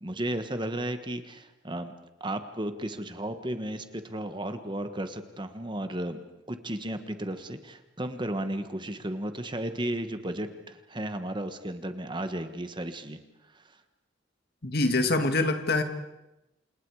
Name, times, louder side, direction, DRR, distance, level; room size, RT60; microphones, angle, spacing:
voice 1, 0.0-1.9 2.2-6.2 6.5-13.2 13.5-13.7, right 1 dB, 25° right, 9 dB, 1.4 m, -34 dB
voice 2, 14.6-15.8, left 2 dB, 55° left, 7 dB, 2.2 m, -25 dB
29.0 x 27.5 x 4.9 m, 0.93 s
head